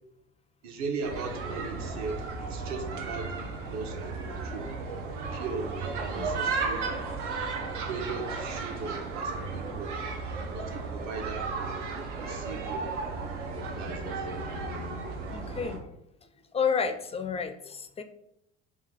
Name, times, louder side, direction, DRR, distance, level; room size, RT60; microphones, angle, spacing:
voice 1, 0.6-4.7 5.3-7.1 7.9-10.0 10.5-11.8 12.2-12.9 13.8-14.3, right 4 dB, 50° right, 5 dB, 0.8 m, -38 dB
sound 1, 1.0-15.8, right 4 dB, 85° right, 0.7 m, -34 dB
voice 2, 15.3-15.9 16.5-18.0, left 6 dB, 20° left, 8 dB, 0.3 m, -31 dB
3.7 x 2.4 x 3.6 m, 0.80 s
hypercardioid pair, 70°, 35 cm